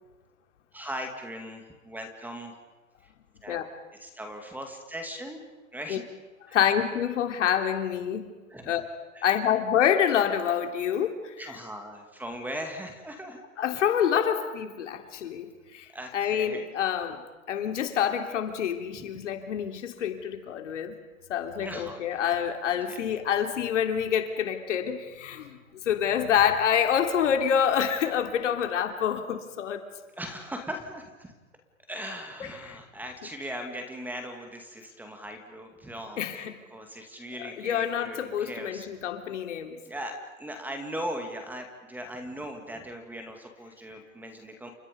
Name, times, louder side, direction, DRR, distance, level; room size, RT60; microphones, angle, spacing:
voice 1, 0.7-2.5 3.4-3.7 4.0-5.4 5.7-6.0 6.5-6.6 8.5-8.8 9.1-9.4 11.4-13.4 15.9-16.7 21.6-22.4 22.9-23.0 30.2-31.3 31.9-36.2 36.7-38.9 39.8-44.7, equal, 5° right, 4 dB, 2.3 m, -39 dB
voice 2, 6.5-8.3 8.7-8.8 9.2-11.3 13.6-15.5 15.7-15.9 16.1-17.2 17.5-21.0 21.3-25.6 25.8-29.8 32.4-32.8 36.2-36.5 37.4-39.8, left 8 dB, 60° left, 5 dB, 3.4 m, -27 dB
30.0 x 26.5 x 5.3 m, 1.2 s
hypercardioid pair, 145°, 40 cm